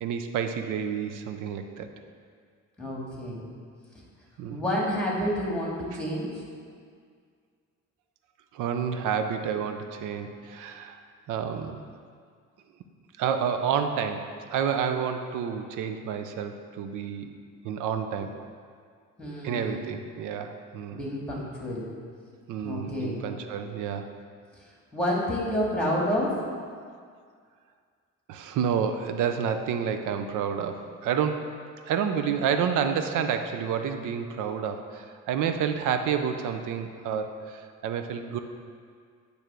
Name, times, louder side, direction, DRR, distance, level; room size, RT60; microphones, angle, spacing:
voice 1, 0.0-1.9 4.4-4.6 8.5-11.0 11.3-11.8 13.2-14.2 14.5-17.3 17.6-18.3 19.4-21.0 22.5-24.1 28.3-31.5 31.9-38.4, right 7 dB, 85° right, 7 dB, 0.6 m, -29 dB
voice 2, 2.8-3.5 4.5-6.4 19.2-20.0 20.9-21.9 22.6-23.2 24.6-26.4, equal, 5° left, -4 dB, 2.1 m, -29 dB
8.8 x 3.4 x 6.2 m, 2.1 s
cardioid pair, 90°, 30 cm